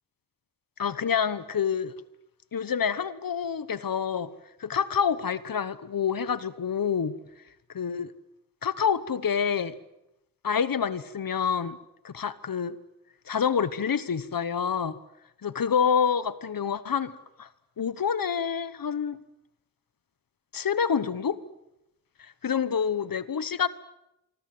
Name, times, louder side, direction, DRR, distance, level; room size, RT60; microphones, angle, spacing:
voice 1, 0.8-1.9 2.5-4.3 4.6-7.2 7.7-8.1 8.6-9.7 10.4-11.8 12.0-12.8 13.3-15.0 15.4-17.5 17.8-19.2 20.5-21.4 22.2-23.7, left 7 dB, 90° left, 1.1 m, -27 dB
26.0 x 24.0 x 7.8 m
cardioid pair, 50°, 33 cm